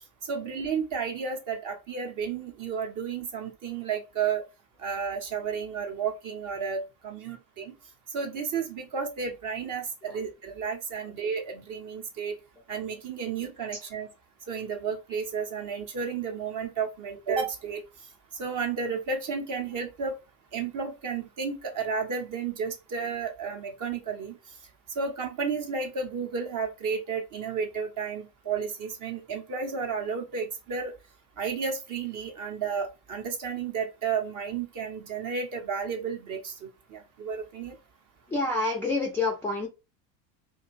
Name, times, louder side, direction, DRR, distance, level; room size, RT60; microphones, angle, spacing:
voice 1, 0.2-4.4 4.8-7.7 8.1-12.4 12.7-14.1 14.5-17.8 18.4-20.2 20.5-24.3 25.0-30.9 31.4-37.8, right 5 dB, 40° right, 0.8 m, -32 dB
voice 2, 38.3-39.7, left 3 dB, 5° left, 0.4 m, -28 dB
2.5 x 2.3 x 3.0 m
hypercardioid pair, 90°, 50 cm